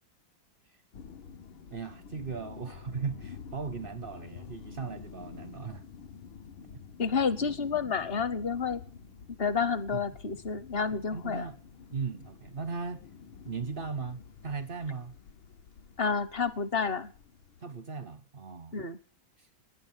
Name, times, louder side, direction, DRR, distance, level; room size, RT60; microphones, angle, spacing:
sound 1, 0.9-17.6, left 6 dB, 80° left, 1.9 m, -49 dB
voice 1, 1.7-5.8 9.9-10.0 11.1-11.6 11.9-13.0 13.4-15.2 17.6-18.8 19.4-19.5, right 5 dB, 55° right, 13 dB, 0.6 m, -37 dB
voice 2, 7.0-8.8 9.4-11.4 16.0-17.1 18.7-19.0, left 5 dB, 50° left, 15 dB, 0.7 m, -30 dB
19.5 x 9.6 x 7.3 m, 0.40 s
omnidirectional pair, 2.1 m